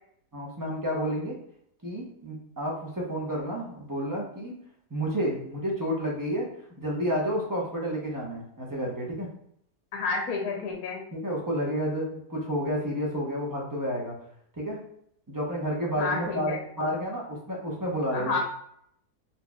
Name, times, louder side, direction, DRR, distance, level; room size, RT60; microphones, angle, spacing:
voice 1, 0.3-1.3 1.8-4.5 4.9-6.5 6.8-9.3 11.1-14.2 14.6-14.8 15.3-18.4, equal, 20° right, -3 dB, 0.5 m, -30 dB
voice 2, 9.9-11.0 16.0-16.6 18.1-18.4, left 4 dB, 70° left, 0 dB, 1.2 m, -30 dB
4.2 x 3.0 x 2.3 m, 0.70 s
omnidirectional pair, 1.7 m